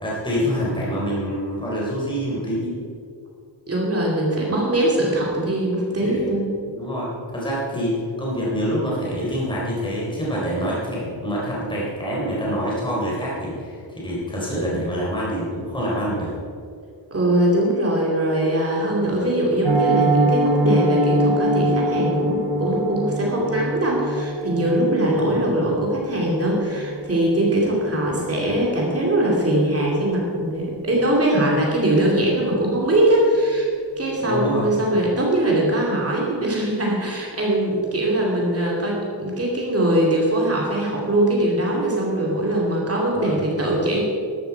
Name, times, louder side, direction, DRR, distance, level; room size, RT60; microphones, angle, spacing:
voice 1, 0.0-2.8 6.0-6.2 6.7-16.3 25.1-25.4 34.2-34.6 43.2-43.4, equal, 10° left, -6 dB, 3.8 m, -26 dB
voice 2, 3.7-6.4 17.1-33.7 34.0-44.0, right 1 dB, 30° right, -3 dB, 2.7 m, -21 dB
Piano, 19.6-30.5 30.8-31.0 31.3-31.5 31.8-32.1 32.4-32.5, right 1 dB, 60° right, 3.4 m, -24 dB
13.5 x 12.5 x 4.7 m, 2.4 s
wide cardioid pair, 170°, 46 cm